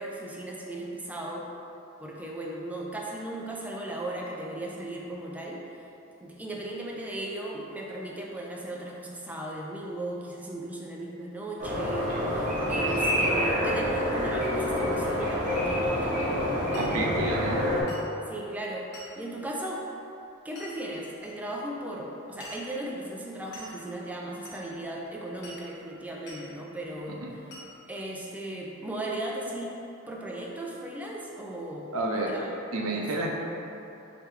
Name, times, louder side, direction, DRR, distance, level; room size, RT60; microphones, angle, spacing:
voice 1, 0.0-1.5 2.0-5.6 6.2-17.1 18.3-19.9 20.4-27.3 27.9-29.8 30.1-32.5 32.9-33.1, right 1 dB, 5° right, -3 dB, 0.4 m, -37 dB
sound 1, 11.6-17.8, equal, 40° right, 1.0 m, -27 dB
Glass, 16.7-17.0 17.9-18.1 18.9-19.2 20.6-20.7 21.2-21.3 22.4-22.7 23.5-23.8 24.5-24.6 25.4-25.7 26.3-26.5 27.5-27.7, left 1 dB, 55° left, 1.0 m, -45 dB
voice 2, 16.7-17.6 27.2-27.3 31.9-32.3 32.7-33.4, right 2 dB, 80° right, 0 dB, 0.6 m, -30 dB
5.0 x 3.2 x 3.2 m, 2.8 s
head